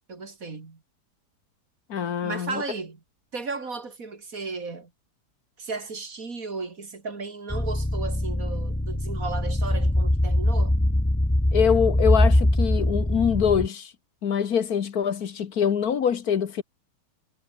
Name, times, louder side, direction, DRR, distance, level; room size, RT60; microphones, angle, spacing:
voice 1, 0.1-0.8 2.2-3.0 3.3-4.9 5.6-10.8, right 4 dB, 55° right, 3.1 m, -35 dB
voice 2, 1.9-2.6 11.5-13.9 14.2-16.6, left 7 dB, 65° left, 1.6 m, -24 dB
sound 1, 7.5-13.7, left 1 dB, 5° left, 1.5 m, -23 dB
omnidirectional pair, 1.8 m